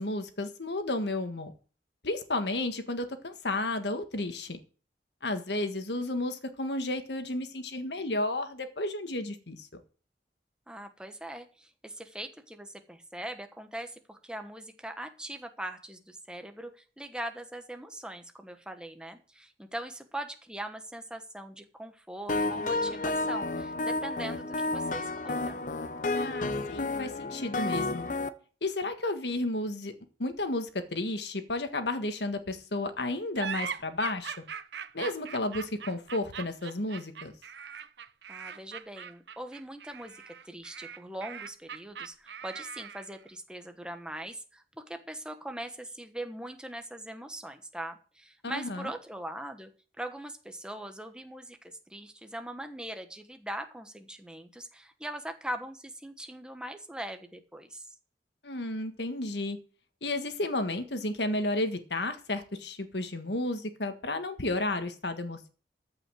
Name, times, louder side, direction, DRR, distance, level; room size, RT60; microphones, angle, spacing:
voice 1, 0.0-1.5 2.0-4.6 5.2-9.8 26.1-28.1 28.6-29.9 30.2-34.3 34.9-37.3 48.4-48.9 58.4-59.6 60.0-65.5, left 2 dB, 75° left, 8 dB, 1.6 m, -32 dB
voice 2, 10.7-25.6 38.3-49.7 50.0-57.9, right 1 dB, 5° right, 6 dB, 1.2 m, -41 dB
sound 1, 22.3-28.3, left 2 dB, 45° left, 0.8 m, -31 dB
sound 2, 33.3-43.2, right 7 dB, 75° right, 0.7 m, -41 dB
14.0 x 5.7 x 7.6 m, 0.38 s
head